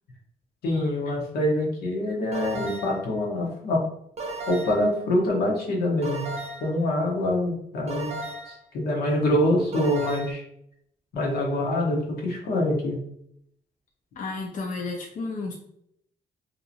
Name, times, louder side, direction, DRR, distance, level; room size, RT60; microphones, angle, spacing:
voice 1, 0.6-3.8 4.5-6.3 6.6-8.2 8.5-10.4 11.1-13.0, left 1 dB, 85° left, -2 dB, 0.8 m, -25 dB
sound 1, 2.3-3.1 4.2-4.9 6.0-6.8 7.9-8.6 9.7-10.3, right 2 dB, 40° right, 0.6 m, -34 dB
voice 2, 14.2-15.5, left 3 dB, 55° left, 1 dB, 0.5 m, -32 dB
2.7 x 2.0 x 2.7 m, 0.71 s
supercardioid pair, 60°, 16 cm